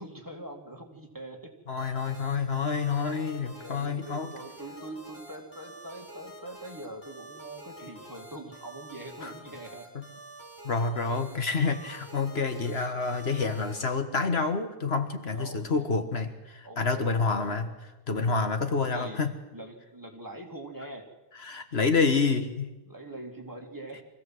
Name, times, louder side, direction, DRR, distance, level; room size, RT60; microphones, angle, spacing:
voice 1, 0.0-1.5 3.5-9.9 15.3-15.9 16.6-17.6 18.2-18.5 18.9-19.2 19.5-21.1 21.8-21.9 22.8-24.0, right 1 dB, 15° right, 1 dB, 2.7 m, -43 dB
voice 2, 1.7-4.3 9.2-9.3 9.9-10.0 10.6-17.7 18.1-19.3 21.4-22.7, left 4 dB, 65° left, 8 dB, 1.7 m, -28 dB
sound 1, 1.8-13.8, right 1 dB, 45° left, 6.0 m, -47 dB
24.5 x 16.0 x 7.8 m, 1.0 s
omnidirectional pair, 1.1 m